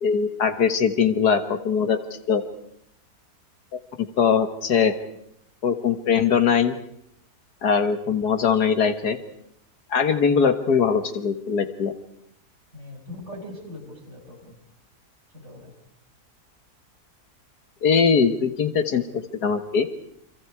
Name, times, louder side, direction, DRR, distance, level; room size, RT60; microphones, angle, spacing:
voice 1, 0.0-2.0 2.3-2.4 4.0-4.9 5.6-6.8 7.6-9.2 9.9-11.9 17.8-19.9, left 6 dB, 75° left, 8 dB, 1.9 m, -21 dB
voice 2, 12.7-14.6 15.3-15.7, left 1 dB, 45° right, -1 dB, 6.9 m, -40 dB
28.5 x 26.0 x 4.8 m, 0.74 s
omnidirectional pair, 1.7 m